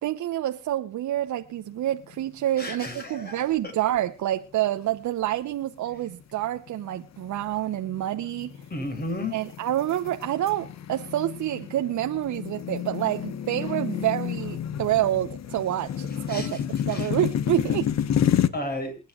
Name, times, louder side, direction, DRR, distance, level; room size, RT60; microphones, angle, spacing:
voice 1, 0.0-8.5 9.3-16.6 16.9-17.9, right 13 dB, 70° right, 1.0 m, -28 dB
sound 1, 2.0-2.6 2.9-3.0 3.7-4.2 4.8-5.0 5.6-18.5, left 9 dB, 60° left, 1.3 m, -30 dB
voice 2, 2.6-3.4 8.7-9.4 16.3-16.5 16.9-17.1 18.5-18.9, left 1 dB, 30° left, 7.9 m, -32 dB
27.5 x 9.5 x 2.5 m
cardioid pair, 90°, 30 cm